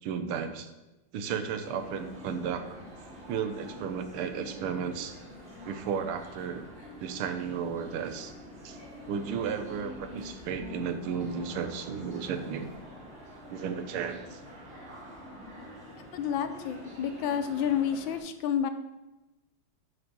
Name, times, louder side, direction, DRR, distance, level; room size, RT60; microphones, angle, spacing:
voice 1, 0.0-0.7 1.1-2.8 3.3-5.2 5.6-6.7 7.0-8.3 8.6-8.8 9.1-12.7 13.5-14.4, right 7 dB, 80° right, 9 dB, 1.7 m, -34 dB
sound 1, 1.6-18.2, left 1 dB, 45° right, 3.0 m, -46 dB
voice 2, 16.1-18.7, left 8 dB, 75° left, 10 dB, 1.2 m, -29 dB
7.9 x 6.1 x 6.1 m, 1.0 s
omnidirectional pair, 2.4 m